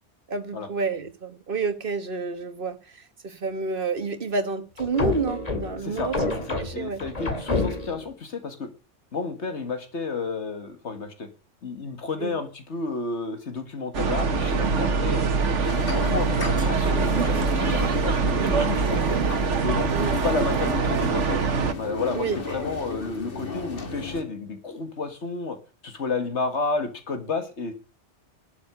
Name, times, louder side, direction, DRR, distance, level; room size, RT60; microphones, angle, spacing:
voice 1, 0.3-6.2 6.6-7.0 12.2-12.3 18.4-18.6 19.9-20.2 22.1-22.4, right 4 dB, 50° right, 10 dB, 1.6 m, -29 dB
sound 1, 4.8-8.1, left 3 dB, 35° left, 2.0 m, -28 dB
voice 2, 5.8-6.1 6.5-8.7 9.1-11.3 11.6-15.3 15.9-19.2 19.6-21.4 21.8-25.6 25.8-27.7, left 4 dB, 70° left, 8 dB, 1.9 m, -31 dB
sound 2, 13.9-21.7, right 4 dB, 80° right, 1.6 m, -24 dB
sound 3, 15.6-24.2, left 4 dB, 50° left, 1.9 m, -34 dB
12.0 x 7.1 x 6.6 m, 0.35 s
omnidirectional pair, 1.2 m